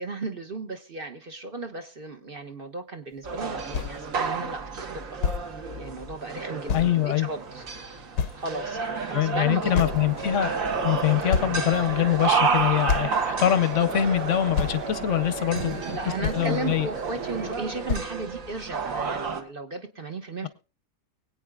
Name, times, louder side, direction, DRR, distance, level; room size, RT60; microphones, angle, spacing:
voice 1, 0.0-5.1 5.8-7.6 8.4-9.9 15.4-20.5, right 3 dB, 40° right, 7 dB, 1.1 m, -35 dB
sound 1, 3.2-19.4, right 5 dB, 55° right, 1.6 m, -31 dB
sound 2, 3.4-3.5 3.7-4.0 4.8-4.9 5.2-5.4 6.7-6.9 7.6-7.7 8.2-8.7 9.7-10.3 10.9-11.0 11.3-11.9 12.5-12.6 12.9-13.2 14.1-14.2 14.5-14.8 15.8-15.9 16.2-16.6 17.5-17.6 17.9-18.1, left 6 dB, 85° left, 1.4 m, -28 dB
voice 2, 6.7-7.3 9.1-10.5 10.8-15.8 16.2-16.9, left 11 dB, 55° left, 13 dB, 1.0 m, -24 dB
sound 3, 9.6-17.5, right 5 dB, 80° right, 1.8 m, -35 dB
23.5 x 8.8 x 2.3 m, 0.33 s
omnidirectional pair, 1.8 m